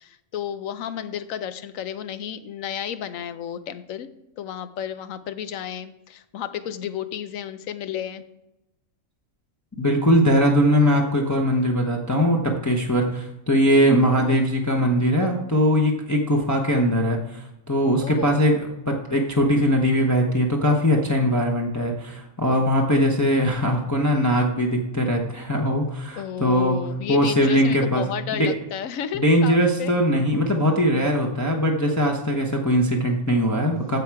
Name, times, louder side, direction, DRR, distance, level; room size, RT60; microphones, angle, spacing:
voice 1, 0.0-4.1 4.4-8.2 14.1-14.4 18.0-18.4 26.2-29.9, left 9 dB, 85° left, 12 dB, 1.1 m, -32 dB
voice 2, 9.8-26.8 27.1-28.0 28.3-28.5 29.1-34.0, equal, 15° left, 0 dB, 0.9 m, -21 dB
15.0 x 5.0 x 4.7 m, 0.91 s
omnidirectional pair, 1.3 m